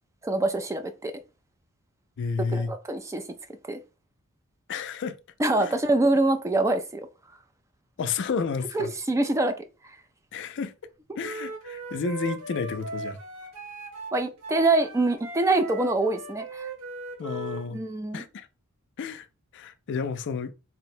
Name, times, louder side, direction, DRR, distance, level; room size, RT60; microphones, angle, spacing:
voice 1, 0.2-1.1 2.5-3.2 3.7-3.8 5.4-7.1 8.7-9.6 14.1-16.7 17.7-18.2, right 2 dB, 15° right, 0.3 m, -25 dB
voice 2, 2.2-2.7 4.7-5.2 5.6-5.7 8.0-8.9 10.3-10.7 11.2-13.2 17.2-17.8 18.1-18.5 19.0-19.3 19.5-20.5, left 5 dB, 55° left, 0.4 m, -31 dB
Wind instrument woodwind instrument, 11.2-17.7, right 3 dB, 85° right, 1.3 m, -38 dB
3.9 x 2.1 x 4.3 m
head